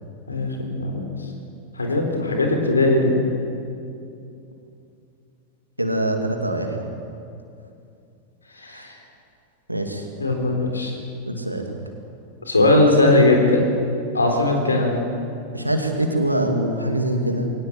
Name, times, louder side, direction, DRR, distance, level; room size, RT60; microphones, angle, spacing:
voice 1, 0.3-1.0 1.8-3.2 8.5-9.0 10.2-10.9 12.5-13.6 14.1-15.0, left 2 dB, 80° left, 3 dB, 4.0 m, -19 dB
voice 2, 5.8-6.9 8.7-8.9 9.7-10.0 11.3-11.8 15.5-17.5, right 1 dB, 85° right, 4 dB, 2.4 m, -24 dB
22.5 x 18.5 x 7.7 m, 2.6 s
figure-of-eight pair, 90°, 0 cm